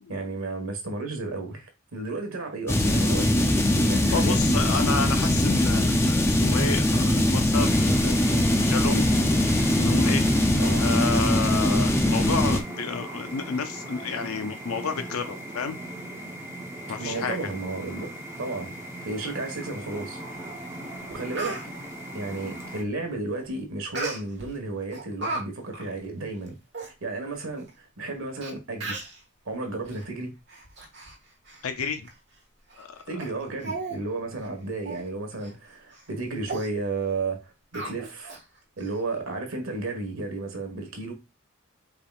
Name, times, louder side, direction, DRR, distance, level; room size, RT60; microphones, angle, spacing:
voice 1, 0.1-4.5 10.6-10.8 11.4-11.6 17.0-18.1 18.4-18.7 19.0-20.2 21.1-21.6 22.1-29.0 29.4-30.3 33.0-38.4 38.8-41.1, right 3 dB, 80° right, 1.4 m, -33 dB
sound 1, 2.7-12.6, left 1 dB, 10° left, 0.4 m, -21 dB
voice 2, 4.1-9.1 9.7-10.3 10.8-15.8 16.9-17.4 31.6-32.1 32.8-33.0, left 5 dB, 90° left, 0.6 m, -30 dB
sound 2, 7.5-22.8, right 1 dB, 15° right, 0.8 m, -38 dB
Speech, 20.6-20.7 21.1-21.6 23.9-24.5 24.9-25.4 25.7-25.9 26.5-26.6 26.7-26.9 27.7-27.8 28.4-28.5 28.8-29.2 29.8-30.0 30.5-31.2 31.5-31.6 32.1-32.2 32.7-32.8 33.2-33.3 33.6-34.0 34.3-34.5 34.8-35.0 35.4-35.5 35.9-36.1 36.5-36.7 37.7-38.4 38.8-38.9, right 2 dB, 55° right, 1.5 m, -35 dB
4.7 x 3.5 x 2.4 m
head